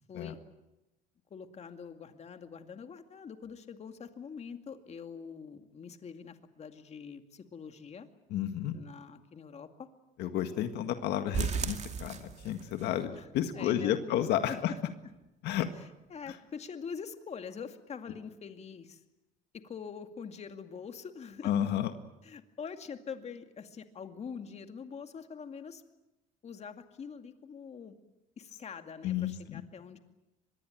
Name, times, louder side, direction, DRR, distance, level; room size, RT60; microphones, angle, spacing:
voice 1, 0.1-0.4 1.3-8.1 8.7-9.9 13.2-13.3 13.5-14.8 15.8-19.0 19.5-21.5 22.2-25.8 26.4-28.0 28.4-30.0, left 6 dB, 40° left, 7 dB, 2.3 m, -44 dB
voice 2, 8.3-8.7 10.2-14.7 15.4-15.7 16.3-16.4 21.4-21.9 29.0-29.6, left 11 dB, 80° left, 8 dB, 1.8 m, -31 dB
sound 1, 11.3-12.9 13.2-13.3 13.7-13.8 14.2-14.3, right 6 dB, 45° right, 2.6 m, -35 dB
24.5 x 21.5 x 9.2 m, 0.98 s
cardioid pair, 110°, 17 cm